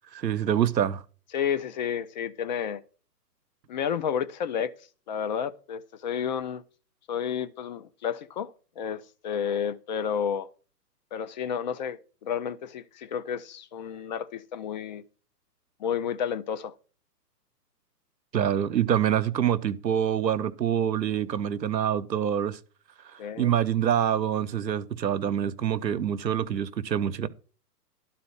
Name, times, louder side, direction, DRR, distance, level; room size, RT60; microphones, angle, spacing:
voice 1, 0.1-1.0 18.3-22.6 23.4-27.3, right 9 dB, 90° right, 0.9 m, -26 dB
voice 2, 1.3-2.8 3.7-4.7 5.1-6.6 7.1-10.5 11.1-15.0 15.8-16.7 23.2-23.5, left 8 dB, 30° left, 0.5 m, -31 dB
12.0 x 4.2 x 7.9 m
hypercardioid pair, 130°, 49 cm